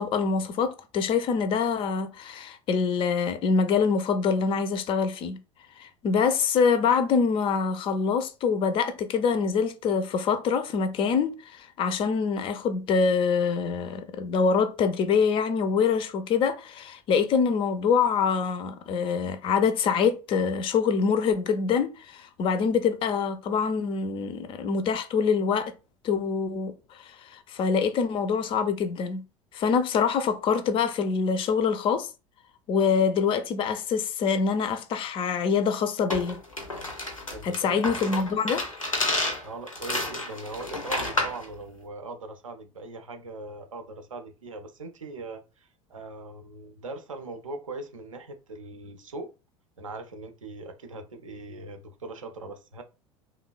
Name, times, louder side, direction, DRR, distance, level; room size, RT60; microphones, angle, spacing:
voice 1, 0.0-5.4 5.8-25.7 26.0-29.2 29.5-32.1 32.7-36.4 37.4-38.6, left 5 dB, 30° left, 0.4 m, -25 dB
sound 1, 36.1-41.4, left 2 dB, 90° left, 0.6 m, -30 dB
voice 2, 37.3-37.8 39.4-49.3 49.8-52.8, right 3 dB, 80° right, 0.5 m, -40 dB
3.0 x 2.1 x 2.2 m
figure-of-eight pair, 75°, 17 cm